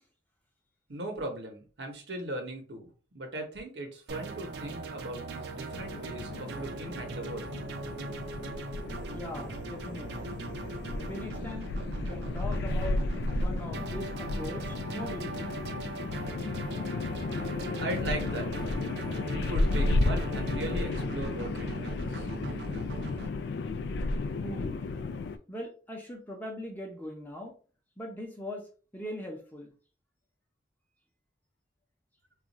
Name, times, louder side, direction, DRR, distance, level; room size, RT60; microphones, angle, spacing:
voice 1, 0.9-7.5 17.8-18.5 18.9-22.3, right 1 dB, 90° right, 3 dB, 0.9 m, -39 dB
sound 1, 4.1-23.3, right 3 dB, 75° right, 0.4 m, -40 dB
sound 2, 5.7-25.4, left 2 dB, 75° left, 0.3 m, -33 dB
voice 2, 9.1-10.4 10.9-15.5 24.4-24.8 25.5-27.5 28.0-28.7 28.9-29.7, left 1 dB, 10° left, 0 dB, 0.6 m, -41 dB
2.4 x 2.3 x 4.0 m, 0.38 s
head